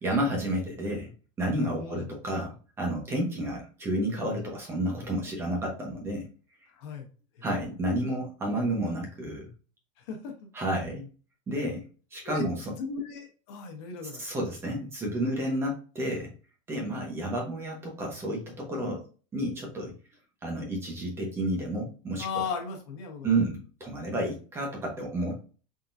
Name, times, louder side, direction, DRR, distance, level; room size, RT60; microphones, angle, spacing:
voice 1, 0.0-1.1 1.4-6.3 7.4-9.5 10.5-11.0 11.5-11.9 12.1-12.7 14.1-16.3 16.7-19.0 19.3-19.9 20.4-22.3 23.2-25.4, right 1 dB, 15° right, 0 dB, 1.0 m, -30 dB
voice 2, 1.7-2.1 6.7-7.1 10.1-10.3 12.2-12.4 12.8-14.3 22.2-23.3, left 6 dB, 55° left, 3 dB, 1.1 m, -36 dB
3.8 x 3.7 x 2.7 m, 0.37 s
supercardioid pair, 170°, 17 cm